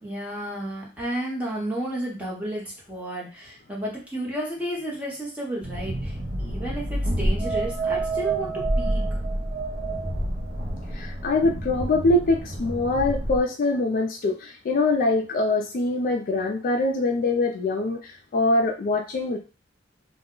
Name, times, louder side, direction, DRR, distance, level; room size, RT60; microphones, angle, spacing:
voice 1, 0.0-9.0, right 1 dB, 5° right, -5 dB, 0.8 m, -32 dB
sound 1, 5.6-13.4, right 1 dB, 35° right, 0.6 m, -28 dB
voice 2, 10.9-19.4, left 2 dB, 45° left, 3 dB, 0.3 m, -23 dB
2.2 x 2.0 x 3.6 m, 0.33 s
head